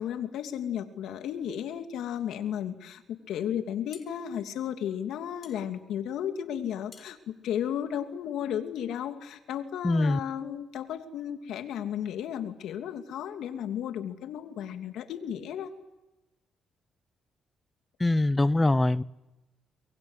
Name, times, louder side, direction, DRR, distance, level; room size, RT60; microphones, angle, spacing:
voice 1, 0.0-15.7, left 9 dB, 80° left, 7 dB, 2.8 m, -34 dB
sound 1, 3.6-8.5, left 5 dB, 40° left, 4.6 m, -56 dB
voice 2, 9.8-10.2 18.0-19.0, left 2 dB, 15° left, 18 dB, 0.9 m, -23 dB
24.5 x 22.5 x 9.9 m, 0.99 s
cardioid pair, 90°, 0 cm